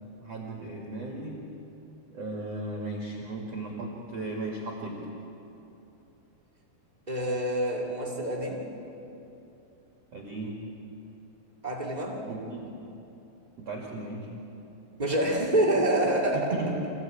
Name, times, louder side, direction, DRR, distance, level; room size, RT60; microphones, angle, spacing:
voice 1, 0.2-1.4 2.1-5.0 10.1-10.6 12.3-12.7 13.6-14.3 15.1-15.2 16.3-16.7, right 2 dB, 45° right, -2 dB, 2.4 m, -36 dB
voice 2, 7.1-8.7 11.6-12.2 15.0-16.5, right 1 dB, 65° right, -1 dB, 0.4 m, -27 dB
26.0 x 16.5 x 8.5 m, 2.9 s
omnidirectional pair, 5.6 m